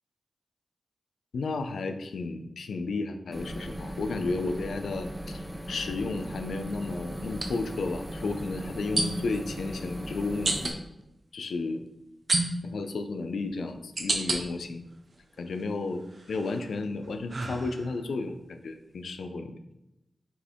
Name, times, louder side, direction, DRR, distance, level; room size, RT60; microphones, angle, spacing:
voice 1, 1.3-10.7 11.3-11.8 12.3-14.8 15.4-19.6, left 3 dB, 85° left, 8 dB, 0.3 m, -33 dB
sound 1, 3.3-10.7, equal, ahead, 0.6 m, -38 dB
sound 2, 4.5-4.7 7.3-7.5 9.0-9.4 10.4-10.8 12.3-12.8 13.5-14.4 14.9-15.6 16.1-18.1, right 2 dB, 65° right, 0.6 m, -30 dB
4.1 x 2.8 x 3.5 m, 0.87 s
cardioid pair, 40°, 0 cm